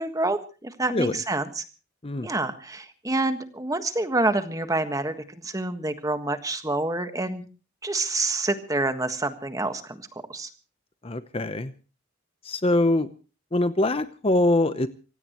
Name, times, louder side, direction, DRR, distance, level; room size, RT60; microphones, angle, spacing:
voice 1, 0.0-1.6 2.2-5.2 5.4-7.4 7.8-10.0 10.3-10.5, right 2 dB, 15° right, 8 dB, 1.5 m, -27 dB
voice 2, 11.0-11.7 12.4-13.1 13.5-14.9, left 2 dB, 30° left, 12 dB, 0.8 m, -23 dB
25.5 x 17.0 x 3.1 m, 0.36 s
head